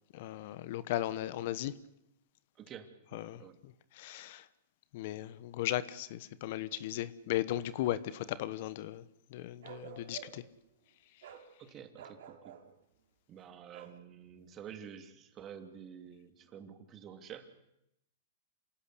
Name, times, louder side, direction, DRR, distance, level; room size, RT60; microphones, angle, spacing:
voice 1, 0.1-1.7 3.1-3.4 3.9-4.4 4.9-9.0 9.3-10.4, left 13 dB, 55° left, 1.2 m, -36 dB
voice 2, 2.5-3.6 11.6-12.5 13.3-17.5, right 8 dB, 25° right, 2.8 m, -49 dB
Bark, 9.6-10.5 11.2-11.5 11.9-12.7 13.7-14.0, right 9 dB, 70° right, 3.7 m, -50 dB
27.5 x 17.5 x 8.4 m
hypercardioid pair, 135°, 0 cm